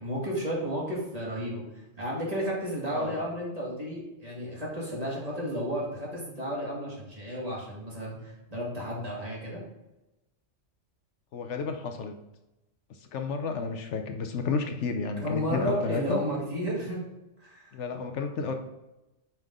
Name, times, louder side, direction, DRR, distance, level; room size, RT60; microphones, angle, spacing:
voice 1, 0.0-1.6 2.0-9.6 15.2-17.0 17.4-17.8, equal, 30° right, -5 dB, 2.2 m, -32 dB
voice 2, 2.9-3.2 11.3-12.1 13.1-16.2 17.7-18.5, left 4 dB, 70° left, 5 dB, 1.0 m, -31 dB
5.7 x 5.4 x 3.7 m, 0.97 s
omnidirectional pair, 1.3 m